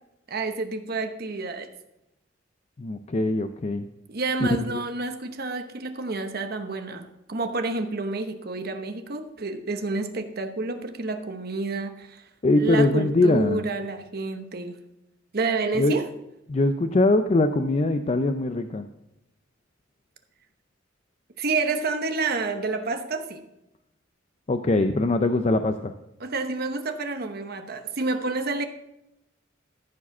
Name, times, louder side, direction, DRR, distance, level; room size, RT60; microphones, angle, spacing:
voice 1, 0.3-1.7 4.1-12.2 12.5-14.8 15.3-16.0 21.4-23.4 26.2-28.6, right 3 dB, 50° right, 7 dB, 1.0 m, -29 dB
voice 2, 2.8-3.9 4.4-4.5 12.4-13.7 15.8-16.0 16.5-18.9 24.5-25.9, left 2 dB, 35° left, 8 dB, 0.4 m, -22 dB
14.0 x 4.9 x 6.0 m, 0.89 s
head